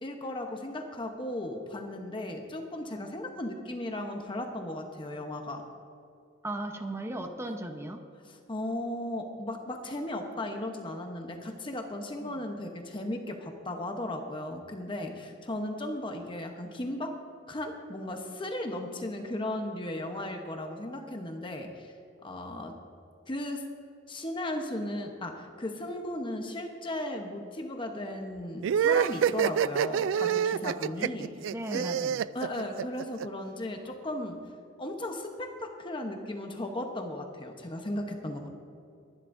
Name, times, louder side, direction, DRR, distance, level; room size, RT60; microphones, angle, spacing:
voice 1, 0.0-5.7 8.2-21.9 22.2-22.8 23.3-23.7 24.1-31.9 32.3-34.4 34.8-38.5, left 1 dB, 25° left, 3 dB, 0.9 m, -36 dB
voice 2, 6.4-8.0 12.2-12.4 31.5-32.2, right 1 dB, 15° right, 5 dB, 0.9 m, -37 dB
sound 1, 28.6-33.2, right 8 dB, 90° right, 0.3 m, -27 dB
23.5 x 11.0 x 2.6 m, 2.6 s
head